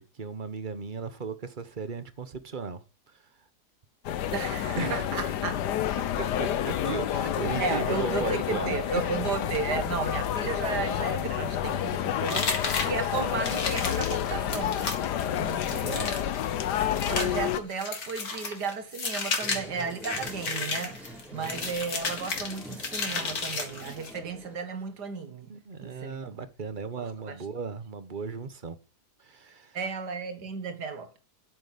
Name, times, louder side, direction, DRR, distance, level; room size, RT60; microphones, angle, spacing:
voice 1, 0.0-2.8 4.7-5.1 6.4-8.8 15.1-16.1 25.5-28.8 29.2-29.8, right 5 dB, 35° right, 1.1 m, -36 dB
sound 1, 4.0-17.6, left 10 dB, 85° left, 1.4 m, -29 dB
voice 2, 4.3-5.6 6.2-6.3 7.6-14.9 17.1-25.5 25.8-26.4 27.0-27.4 29.7-31.2, right 5 dB, 80° right, 2.3 m, -34 dB
sound 2, 12.3-24.2, left 4 dB, 65° left, 2.5 m, -33 dB
sound 3, 19.4-24.6, equal, ahead, 3.5 m, -45 dB
9.0 x 8.6 x 8.2 m
omnidirectional pair, 1.7 m